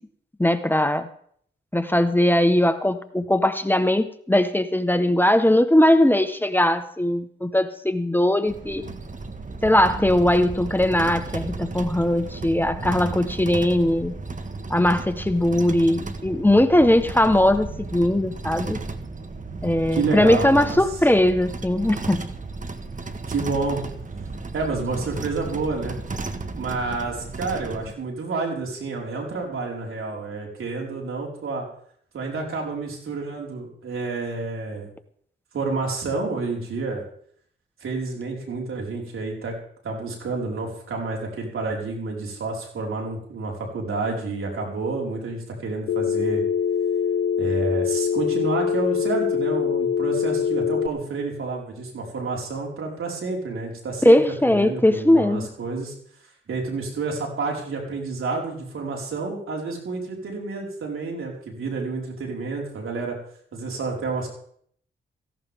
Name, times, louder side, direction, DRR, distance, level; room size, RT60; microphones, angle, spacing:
voice 1, 0.4-1.1 1.7-8.8 9.6-14.1 14.7-18.8 19.6-22.2 54.0-55.5, left 1 dB, 10° left, 9 dB, 1.3 m, -20 dB
sound 1, 8.5-27.9, right 3 dB, 40° right, 1.6 m, -34 dB
voice 2, 19.9-20.8 23.3-23.8 24.5-26.0 26.6-31.6 32.1-34.9 35.5-37.0 37.8-39.5 39.8-46.4 47.4-55.9 56.5-63.2 63.5-64.3, right 3 dB, 75° right, -1 dB, 5.1 m, -29 dB
Telephone, 45.9-50.9, left 7 dB, 75° left, 0.6 m, -23 dB
17.5 x 16.0 x 3.7 m, 0.63 s
cardioid pair, 55°, 21 cm